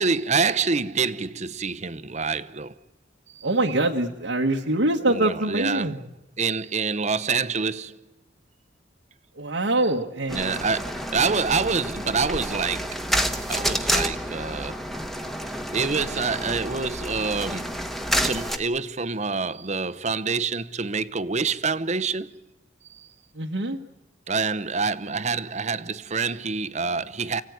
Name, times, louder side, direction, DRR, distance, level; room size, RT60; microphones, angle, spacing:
voice 1, 0.0-2.8 3.3-3.5 5.0-5.9 6.4-8.0 10.3-14.8 15.7-17.9 18.2-22.4 22.9-23.1 24.3-27.4, right 4 dB, 40° right, 0.9 m, -27 dB
voice 2, 3.4-6.0 9.4-10.6 23.3-23.8, right 2 dB, 80° right, 1.4 m, -24 dB
sound 1, 10.3-18.6, equal, ahead, 1.3 m, -29 dB
29.0 x 16.5 x 9.5 m
head